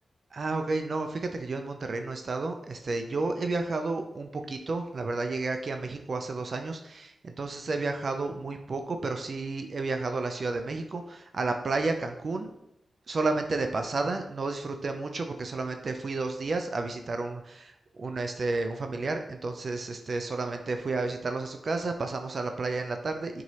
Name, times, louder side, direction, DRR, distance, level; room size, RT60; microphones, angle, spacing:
voice 1, 0.3-12.5 13.1-23.4, right 3 dB, 55° right, 5 dB, 0.4 m, -31 dB
4.4 x 3.0 x 2.8 m, 0.79 s
cardioid pair, 60°, 0 cm